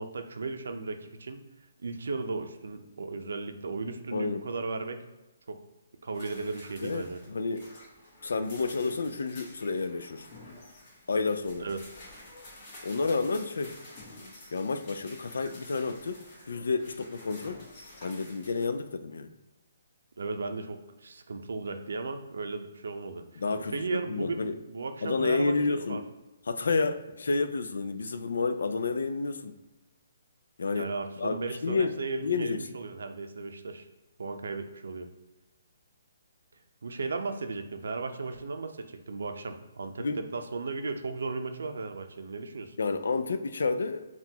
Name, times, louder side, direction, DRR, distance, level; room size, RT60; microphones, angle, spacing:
voice 1, 0.0-1.4 1.8-5.0 5.5-5.6 6.0-7.2 11.6-11.8 20.2-23.4 23.7-26.0 30.7-33.9 34.2-35.1 36.8-42.8, right 3 dB, 80° right, 6 dB, 0.5 m, -35 dB
voice 2, 4.1-4.4 6.8-7.7 8.2-10.3 11.1-11.7 12.8-13.8 14.5-17.6 18.0-19.3 23.4-23.7 24.1-24.6 25.0-26.1 26.5-29.6 30.6-30.9 31.2-32.7 40.0-40.2 42.8-44.1, left 4 dB, 85° left, 10 dB, 0.4 m, -30 dB
sound 1, 6.1-18.6, left 1 dB, 30° left, 1.2 m, -50 dB
5.8 x 2.4 x 2.8 m, 1.1 s
hypercardioid pair, 170°, 0 cm